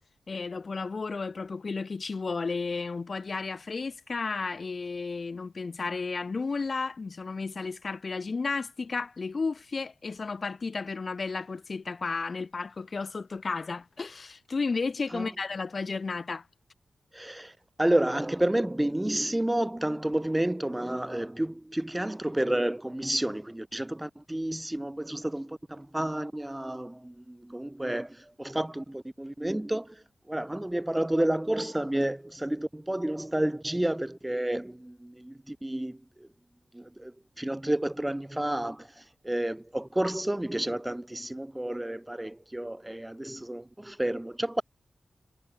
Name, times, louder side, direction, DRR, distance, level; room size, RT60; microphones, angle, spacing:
voice 1, 0.3-16.5, left 4 dB, 55° left, 4.3 m, -33 dB
voice 2, 17.1-36.3 36.7-44.6, right 1 dB, 15° right, 3.8 m, -30 dB
cardioid pair, 65°, 0 cm